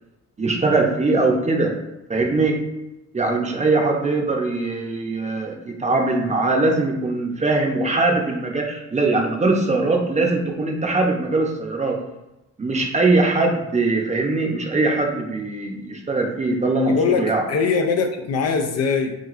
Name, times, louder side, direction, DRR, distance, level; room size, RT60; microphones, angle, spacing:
voice 1, 0.4-1.7 2.1-2.6 3.1-12.0 12.6-17.4, right 3 dB, 25° right, 1 dB, 0.7 m, -21 dB
voice 2, 16.9-19.2, left 5 dB, 55° left, 5 dB, 0.5 m, -22 dB
6.2 x 2.3 x 2.5 m, 0.94 s
cardioid pair, 90°, 30 cm